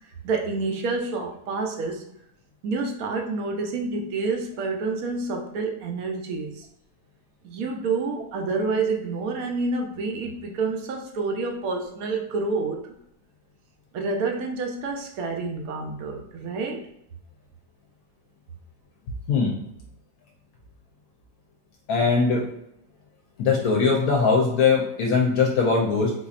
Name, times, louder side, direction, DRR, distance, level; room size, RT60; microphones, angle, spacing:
voice 1, 0.2-2.0 2.6-6.6 7.4-12.9 13.9-16.8, right 3 dB, 65° right, 2 dB, 1.0 m, -28 dB
voice 2, 21.9-22.4 23.4-26.1, left 4 dB, 70° left, -1 dB, 1.0 m, -21 dB
4.2 x 2.6 x 2.4 m, 0.78 s
omnidirectional pair, 1.7 m